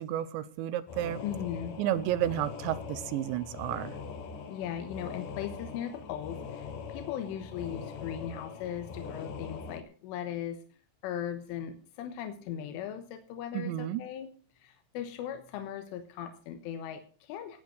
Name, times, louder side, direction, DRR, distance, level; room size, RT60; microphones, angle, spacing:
voice 1, 0.0-1.2 1.8-4.0 13.5-14.0, right 12 dB, 75° right, 15 dB, 2.8 m, -31 dB
sound 1, 0.9-9.8, left 5 dB, 60° left, 2.3 m, -42 dB
voice 2, 1.2-1.8 4.5-14.3 14.5-17.6, left 9 dB, 80° left, 7 dB, 3.7 m, -38 dB
19.0 x 8.8 x 6.4 m, 0.40 s
omnidirectional pair, 5.8 m